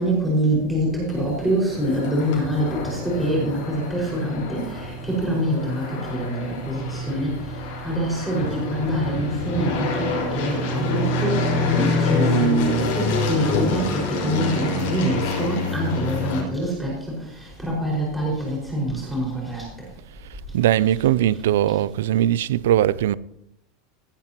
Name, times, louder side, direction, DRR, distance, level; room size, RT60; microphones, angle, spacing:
voice 1, 0.0-7.3 7.8-16.9 17.4-19.6, equal, 5° right, 5.3 m, -25 dB
sound 1, 1.1-16.4, left 2 dB, 65° left, 5.4 m, -26 dB
voice 2, 20.5-23.1, right 12 dB, 85° right, 0.4 m, -20 dB
17.0 x 10.5 x 3.0 m
supercardioid pair, 115°, 0 cm